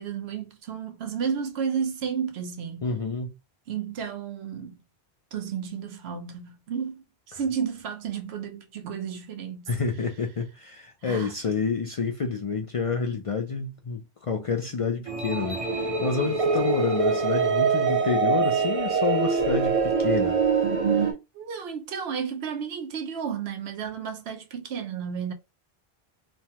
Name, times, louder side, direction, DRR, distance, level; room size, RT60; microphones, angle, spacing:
voice 1, 0.0-2.8 3.7-4.8 5.3-9.7 11.0-11.3 20.9-21.1 21.3-25.3, right 7 dB, 80° right, 0.9 m, -32 dB
voice 2, 2.8-3.3 7.3-7.4 9.7-20.4, left 5 dB, 55° left, 0.4 m, -29 dB
sound 1, 15.1-21.1, right 5 dB, 40° right, 0.6 m, -24 dB
3.2 x 2.1 x 2.7 m
omnidirectional pair, 1.1 m